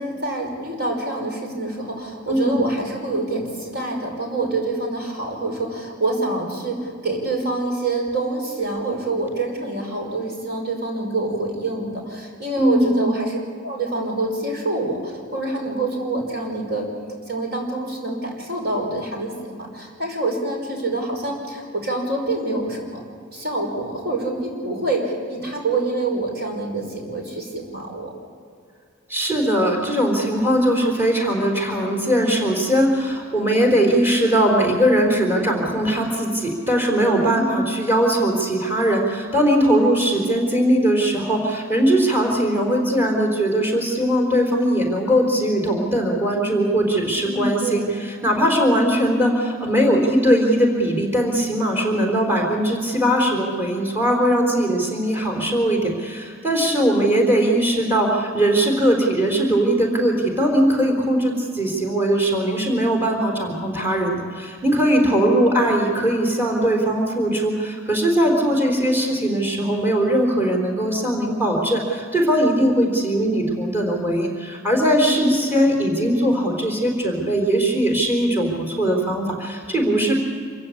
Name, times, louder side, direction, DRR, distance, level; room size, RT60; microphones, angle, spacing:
voice 1, 0.0-16.9 17.3-23.0 23.3-28.1 37.3-37.6 47.2-47.9 56.8-57.1 65.0-65.4 75.0-75.3, right 2 dB, 50° right, 1 dB, 5.4 m, -26 dB
voice 2, 2.3-2.6 12.6-13.1 29.1-80.1, right 1 dB, 10° right, 0 dB, 4.0 m, -20 dB
26.5 x 15.5 x 8.5 m, 2.2 s
head